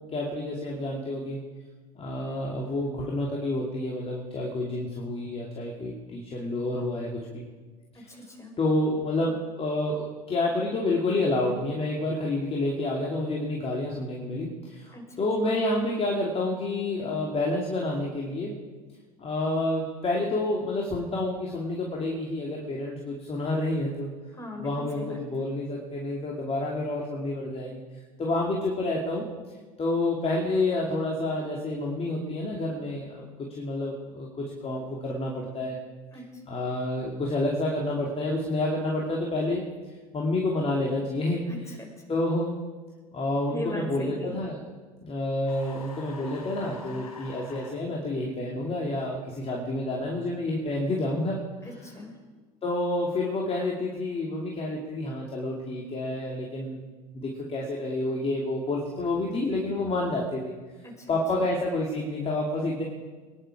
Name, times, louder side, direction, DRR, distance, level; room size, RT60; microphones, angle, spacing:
voice 1, 0.1-1.4 2.0-7.4 7.9-8.0 8.6-18.5 19.2-24.1 24.6-27.8 28.2-29.2 29.8-35.8 36.5-39.6 40.1-41.4 42.1-42.5 43.1-44.6 45.0-51.4 52.6-56.8 57.1-60.5 61.1-62.8, left 2 dB, 30° left, -2 dB, 2.9 m, -29 dB
voice 2, 7.9-8.5 14.9-15.2 15.4-15.5 24.3-25.2 36.1-36.4 41.4-41.9 43.5-44.4 51.6-52.2 60.8-61.4, left 1 dB, 15° left, 1 dB, 5.5 m, -40 dB
sound 1, 45.5-47.8, left 4 dB, 85° left, 4.6 m, -45 dB
23.5 x 10.5 x 5.0 m, 1.4 s
hypercardioid pair, 75°, 19 cm